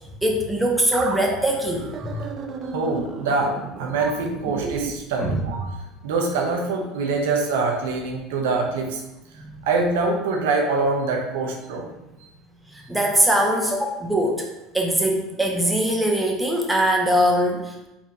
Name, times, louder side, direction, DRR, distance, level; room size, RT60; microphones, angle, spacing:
voice 1, 0.2-2.2 5.2-5.4 9.4-9.5 12.9-14.5 14.7-17.9, right 1 dB, 5° right, 0 dB, 0.9 m, -22 dB
sound 1, 0.9-5.8, right 5 dB, 45° right, 0.4 m, -34 dB
voice 2, 2.7-5.7 6.0-9.0 9.7-11.9, right 3 dB, 80° right, 1 dB, 0.7 m, -24 dB
4.2 x 3.5 x 2.8 m, 0.99 s
hypercardioid pair, 80°, 0 cm